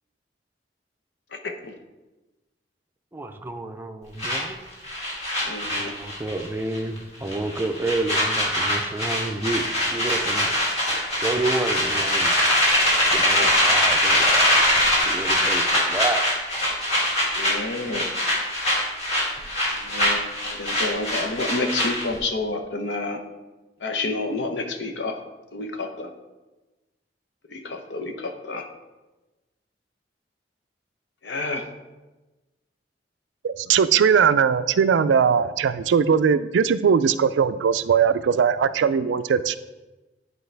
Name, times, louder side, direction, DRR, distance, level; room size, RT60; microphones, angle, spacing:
voice 1, 3.1-4.6 5.8-10.5 11.2-12.4 13.1-14.3 15.0-16.2, right 2 dB, 10° right, 6 dB, 0.5 m, -29 dB
sound 1, 4.2-6.5 6.7-7.0 7.3-22.2, left 1 dB, 40° left, 2.3 m, -22 dB
voice 2, 5.4-5.9 13.3-13.6 17.4-18.0 19.8-23.2 23.8-25.2 25.5-26.1 27.5-28.6 31.2-31.6, left 3 dB, 75° left, 5 dB, 0.8 m, -29 dB
voice 3, 33.4-39.6, right 7 dB, 85° right, 13 dB, 0.3 m, -20 dB
10.5 x 4.6 x 3.3 m, 1.1 s
head